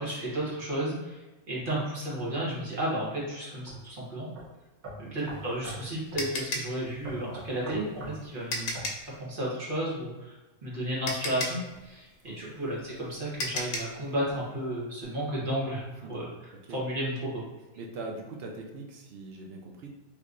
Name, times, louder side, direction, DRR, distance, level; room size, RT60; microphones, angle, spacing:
voice 1, 0.0-4.3 5.0-8.8 9.2-10.3 10.6-16.3 16.7-17.4, right 1 dB, 40° right, -6 dB, 1.2 m, -33 dB
sound 1, 3.7-3.8 4.4-4.5 4.8-5.8 6.1-6.3 7.0-8.2 8.7-8.9, equal, 85° right, 1.7 m, -41 dB
sound 2, 5.3-9.1 10.5-10.6 11.1-14.0, left 2 dB, 80° left, 1.1 m, -35 dB
voice 2, 17.8-19.9, right 3 dB, 65° right, 1 dB, 0.6 m, -41 dB
3.3 x 3.0 x 2.5 m, 1.1 s
omnidirectional pair, 1.5 m